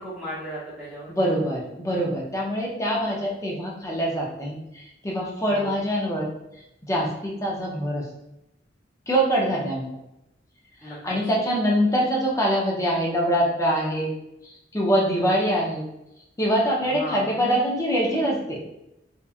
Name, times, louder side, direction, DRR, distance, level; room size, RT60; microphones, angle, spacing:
voice 1, 0.0-1.1 5.5-5.8 10.8-11.0 16.8-17.3, equal, ahead, -11 dB, 0.8 m, -35 dB
voice 2, 1.1-6.3 6.8-8.0 9.1-9.9 10.8-14.1 14.4-15.8 16.4-18.6, equal, 15° left, -3 dB, 0.5 m, -24 dB
2.8 x 2.3 x 2.4 m, 0.88 s
head